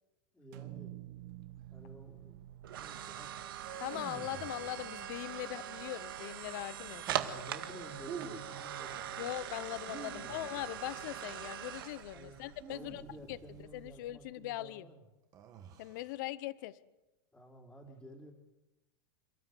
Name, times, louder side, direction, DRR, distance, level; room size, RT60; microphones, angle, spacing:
voice 1, 0.3-0.9 1.7-3.4 3.9-4.3 7.1-9.3 10.1-10.4 10.9-11.0 12.1-12.4 12.7-15.0 17.3-18.3, right 1 dB, 5° left, -5 dB, 3.3 m, -52 dB
sound 1, 0.5-4.7, right 16 dB, 55° right, 1.3 m, -51 dB
sound 2, 1.2-14.2, right 10 dB, 85° right, 2.0 m, -43 dB
sound 3, 3.6-5.6 6.8-7.3 8.0-8.6 9.7-11.0 12.5-13.7 15.3-16.1, right 7 dB, 30° right, 2.3 m, -49 dB
voice 2, 3.8-7.0 9.2-13.0 13.3-13.4 13.7-14.8 15.8-16.8, left 16 dB, 60° left, 17 dB, 0.9 m, -40 dB
29.5 x 13.0 x 8.0 m, 1.0 s
supercardioid pair, 145°, 12 cm